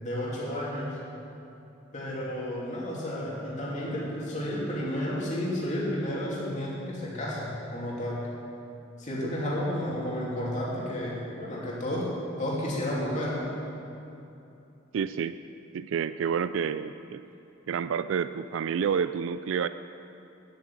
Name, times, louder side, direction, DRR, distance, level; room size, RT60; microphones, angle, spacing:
voice 1, 0.0-1.0 1.9-8.3 9.0-12.1 12.4-13.5, left 1 dB, 40° left, -5 dB, 2.9 m, -32 dB
voice 2, 14.9-15.4 15.7-17.2 17.7-19.7, right 7 dB, 70° right, 12 dB, 0.3 m, -29 dB
9.9 x 8.7 x 9.3 m, 2.8 s
head